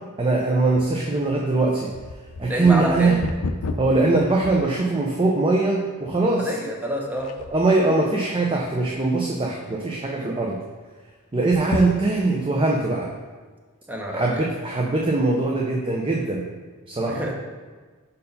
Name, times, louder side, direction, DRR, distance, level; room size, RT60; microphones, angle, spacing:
voice 1, 0.2-1.9 2.4-3.2 3.8-6.5 7.5-10.6 11.3-13.1 14.1-16.5 16.9-17.2, right 3 dB, 25° right, -1 dB, 0.6 m, -21 dB
sound 1, 0.7-5.2 5.8-5.9 6.6-6.8 7.2-7.8 8.3-9.0 9.4-9.5 9.8-9.9 11.4-12.5 13.1-13.2, left 3 dB, 70° left, 0.5 m, -33 dB
voice 2, 2.5-3.2 6.4-7.3 10.1-10.4 13.9-14.4 17.1-17.3, equal, 10° right, -1 dB, 0.9 m, -28 dB
5.4 x 4.6 x 5.3 m, 1.4 s
head